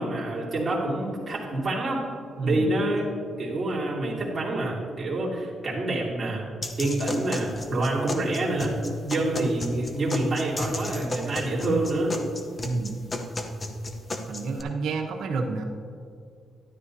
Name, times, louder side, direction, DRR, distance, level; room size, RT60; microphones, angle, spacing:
voice 1, 0.0-2.0 2.4-3.1 3.4-6.4 6.8-8.7 9.0-12.2, right 2 dB, 25° right, -7 dB, 2.8 m, -27 dB
sound 1, 6.6-14.6, left 1 dB, 25° left, 0.8 m, -33 dB
voice 2, 12.6-13.0 14.3-15.6, right 3 dB, 85° right, 1 dB, 1.2 m, -29 dB
13.0 x 11.5 x 2.8 m, 2.3 s
cardioid pair, 145°, 0 cm